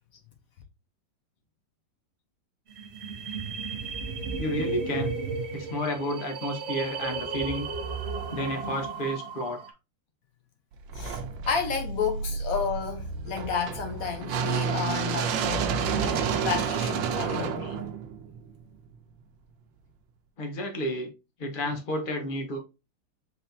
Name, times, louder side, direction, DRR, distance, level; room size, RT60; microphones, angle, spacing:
sound 1, 2.7-9.7, right 4 dB, 60° right, 0.7 m, -34 dB
voice 1, 4.4-5.2 5.5-7.7 8.3-9.6 20.4-21.1 21.4-22.6, equal, 35° left, 1.0 m, -31 dB
sound 2, 10.9-18.9, right 6 dB, 85° right, 1.4 m, -30 dB
voice 2, 11.5-17.9, left 6 dB, 60° left, 1.0 m, -31 dB
4.2 x 4.1 x 2.6 m
omnidirectional pair, 2.0 m